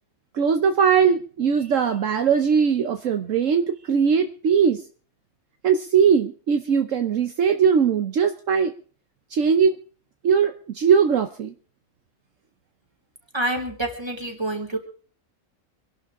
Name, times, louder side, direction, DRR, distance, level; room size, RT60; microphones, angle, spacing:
voice 1, 0.3-4.8 5.6-8.7 9.3-9.8 10.2-11.5, right 6 dB, 65° right, 6 dB, 1.2 m, -20 dB
voice 2, 13.3-14.8, right 1 dB, 20° right, 1 dB, 3.3 m, -27 dB
26.0 x 11.5 x 3.7 m, 0.42 s
omnidirectional pair, 1.4 m